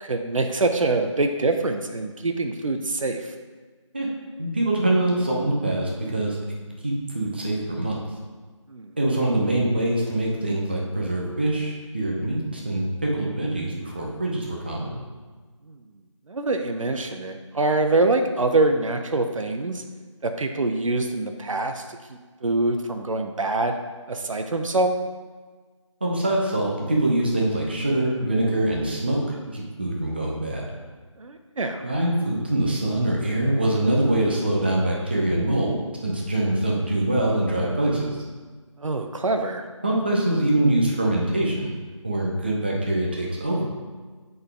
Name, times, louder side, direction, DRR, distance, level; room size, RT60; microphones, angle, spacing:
voice 1, 0.0-3.3 8.7-8.9 15.7-15.8 16.3-19.8 20.2-21.8 22.4-23.8 24.1-25.0 31.2-31.8 38.8-39.7, right 2 dB, 85° right, 5 dB, 0.6 m, -24 dB
voice 2, 4.4-6.4 6.8-7.9 9.0-14.9 26.0-29.2 29.5-30.7 31.8-38.2 39.8-41.7 42.0-43.6, right 1 dB, 20° right, -2 dB, 0.5 m, -24 dB
7.9 x 3.9 x 3.4 m, 1.4 s
figure-of-eight pair, 165°, 16 cm